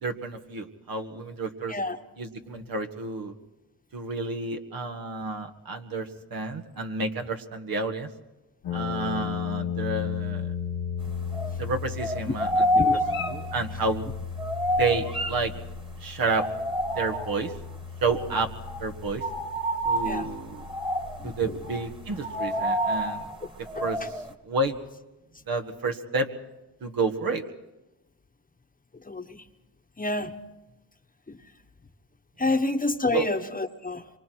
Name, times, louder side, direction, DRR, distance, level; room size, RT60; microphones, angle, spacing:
voice 1, 0.0-1.7 2.2-3.3 3.9-8.1 8.7-10.5 11.6-12.7 13.3-14.0 14.7-15.5 16.0-16.5 16.9-17.5 18.0-18.5 18.8-19.3 19.8-20.7 21.2-23.3 23.8-24.0 24.5-24.8 25.5-26.3 26.8-27.4 33.1-33.3, right 3 dB, 60° right, 5 dB, 1.9 m, -30 dB
sound 1, 8.6-22.7, left 7 dB, 85° left, 2.3 m, -36 dB
sound 2, 11.0-11.7 12.0-15.9 16.3-17.6 18.0-18.3 18.5-24.3, equal, 15° right, 1.9 m, -28 dB
voice 2, 21.2-21.6 23.7-24.1 28.9-29.5 30.0-30.3 31.3-31.4 32.4-34.1, left 2 dB, 20° left, 7 dB, 1.3 m, -29 dB
26.5 x 24.0 x 4.7 m, 1.0 s
cardioid pair, 70°, 39 cm